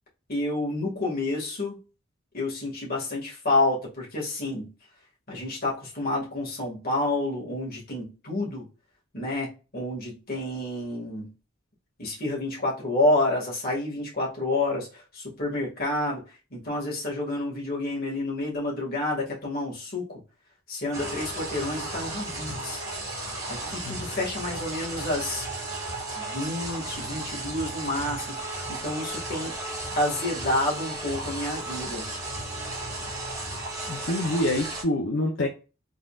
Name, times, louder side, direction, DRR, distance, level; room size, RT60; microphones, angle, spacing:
voice 1, 0.3-1.8 2.3-4.7 5.3-8.7 9.1-11.3 12.0-16.2 16.5-20.2 20.7-22.8 23.5-25.4 26.2-29.5 30.0-32.1, left 2 dB, 45° left, 2.0 m, -29 dB
sound 1, 20.9-34.8, right 2 dB, 15° right, 1.5 m, -34 dB
voice 2, 33.9-35.5, left 1 dB, 65° left, 0.7 m, -26 dB
4.0 x 3.8 x 2.4 m
head